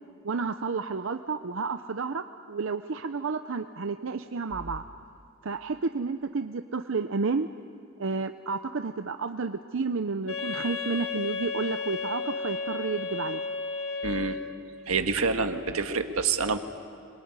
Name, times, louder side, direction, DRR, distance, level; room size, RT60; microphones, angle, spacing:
voice 1, 0.2-4.8 5.4-7.5 8.0-13.4, right 4 dB, 65° right, 8 dB, 0.7 m, -31 dB
Wind instrument woodwind instrument, 10.3-14.7, left 4 dB, 75° left, 1.9 m, -33 dB
voice 2, 14.0-14.4 14.9-16.6, right 4 dB, 85° right, 7 dB, 1.7 m, -27 dB
25.5 x 22.5 x 9.6 m, 2.6 s
head